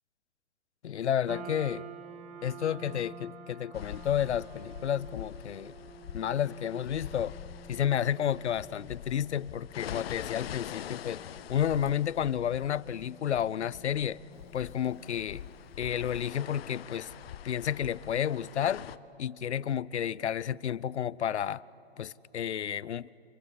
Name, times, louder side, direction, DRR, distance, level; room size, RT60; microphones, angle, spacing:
voice 1, 0.8-1.9 2.4-5.7 6.1-7.3 7.7-11.2 11.5-14.2 14.5-15.4 15.8-17.1 17.4-18.8 19.2-21.6 22.0-23.1, left 9 dB, 85° left, 0.6 m, -31 dB
sound 1, 1.3-15.7, right 5 dB, 20° right, 2.0 m, -50 dB
sound 2, 3.7-19.0, left 10 dB, 60° left, 0.9 m, -44 dB
30.0 x 20.5 x 7.5 m
hypercardioid pair, 130°, 33 cm